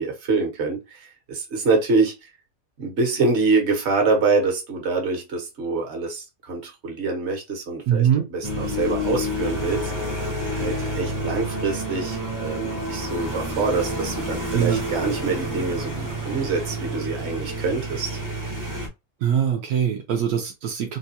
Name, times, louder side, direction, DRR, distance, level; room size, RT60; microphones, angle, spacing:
voice 1, 0.0-2.3 2.8-9.9 10.5-18.2, right 3 dB, 50° right, 1.2 m, -25 dB
voice 2, 7.9-8.3 14.5-14.8 19.2-21.0, right 9 dB, 80° right, 1.1 m, -22 dB
sound 1, 8.4-18.9, equal, 20° right, 0.5 m, -29 dB
3.7 x 2.3 x 2.7 m
omnidirectional pair, 1.6 m